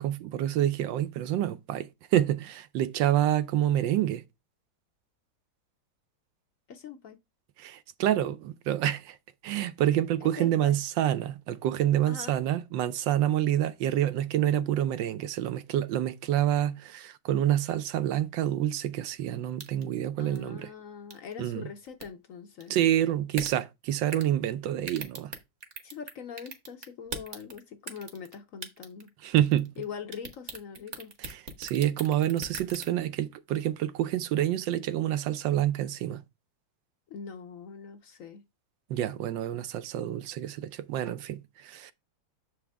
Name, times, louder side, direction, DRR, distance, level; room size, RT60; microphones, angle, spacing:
voice 1, 0.0-4.2 7.6-9.2 9.4-20.7 21.4-21.7 22.7-25.3 29.2-29.7 31.2-36.2 38.9-41.9, right 12 dB, 75° right, 1.2 m, -27 dB
voice 2, 6.7-7.2 10.4-10.8 12.1-12.4 20.2-22.7 25.8-29.1 29.8-31.1 37.1-38.4, left 6 dB, 65° left, 0.8 m, -42 dB
sound 1, 19.6-19.9 20.4-20.5 21.1-21.3 21.9-22.1 22.6-22.8 23.3-23.5 24.1-24.3 24.8-26.1 26.4-27.6 27.9-28.3 28.6-29.1 29.4-29.8 30.1-32.9, right 4 dB, 40° right, 1.4 m, -38 dB
7.0 x 5.0 x 3.3 m
omnidirectional pair, 2.1 m